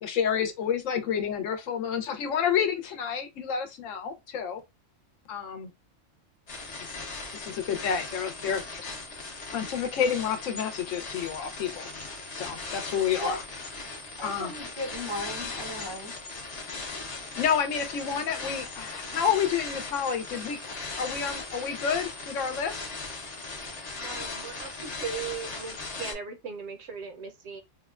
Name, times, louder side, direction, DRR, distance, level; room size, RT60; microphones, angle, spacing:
voice 1, 0.0-4.6 5.3-5.7 6.8-7.0 7.3-8.9 9.5-11.9 12.3-13.4 14.2-14.5 17.4-22.9, left 7 dB, 80° left, 1.0 m, -29 dB
sound 1, 6.5-26.1, left 3 dB, 40° left, 0.6 m, -38 dB
voice 2, 14.2-16.2, left 1 dB, 35° right, 0.4 m, -36 dB
voice 3, 24.0-27.6, right 6 dB, 65° right, 0.9 m, -38 dB
3.5 x 2.1 x 2.3 m
omnidirectional pair, 1.3 m